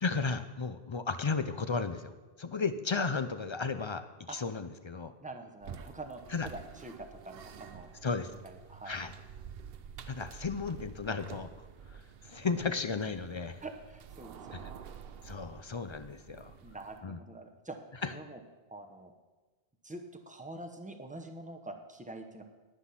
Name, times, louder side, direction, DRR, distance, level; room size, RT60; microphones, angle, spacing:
voice 1, 0.0-2.1 2.4-5.1 6.3-6.5 8.0-8.3 8.8-9.1 10.1-11.5 11.9-13.6 14.5-14.7 15.2-16.5 17.0-17.2 18.0-18.1, left 4 dB, 40° left, 11 dB, 0.4 m, -34 dB
voice 2, 5.2-7.9 8.4-9.0 13.6-14.8 16.6-17.8 18.1-18.4 18.7-19.1 19.8-22.4, right 2 dB, 10° right, 4 dB, 0.9 m, -45 dB
sound 1, 5.6-17.0, right 7 dB, 70° right, 0.9 m, -49 dB
9.9 x 9.7 x 5.7 m, 1.3 s
omnidirectional pair, 1.1 m